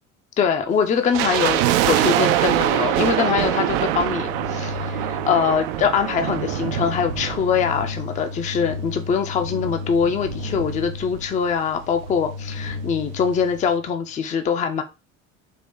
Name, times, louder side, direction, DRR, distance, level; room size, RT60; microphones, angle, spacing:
voice 1, 0.4-14.8, left 6 dB, 20° left, 0.5 m, -23 dB
sound 1, 1.1-8.4 8.7-8.8 9.4-11.3 11.5-11.6 11.8-12.1 12.6-12.7, right 12 dB, 45° right, 0.4 m, -24 dB
sound 2, 3.4-14.0, left 4 dB, 85° right, 1.0 m, -34 dB
4.4 x 2.8 x 3.5 m
figure-of-eight pair, 65°, 41 cm